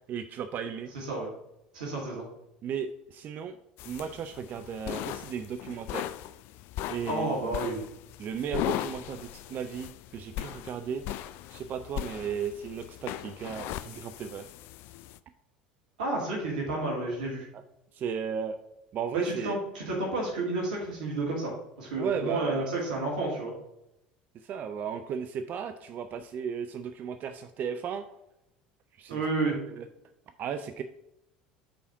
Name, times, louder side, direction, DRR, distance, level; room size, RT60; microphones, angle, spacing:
voice 1, 0.1-0.9 2.6-3.6 3.9-6.2 6.9-7.6 8.2-11.1 11.5-14.5 17.5-17.6 17.9-18.6 18.9-19.6 21.9-22.8 24.3-28.0 29.0-29.2 29.7-29.9 30.4-30.8, right 7 dB, 45° right, 9 dB, 0.5 m, -35 dB
voice 2, 0.9-1.3 1.7-2.3 7.1-7.8 16.0-17.5 19.1-23.5 29.1-29.6, right 2 dB, 75° right, -3 dB, 2.4 m, -31 dB
sound 1, 3.8-15.2, left 13 dB, 55° left, 0.3 m, -38 dB
5.1 x 4.9 x 6.1 m, 0.85 s
figure-of-eight pair, 70°, 4 cm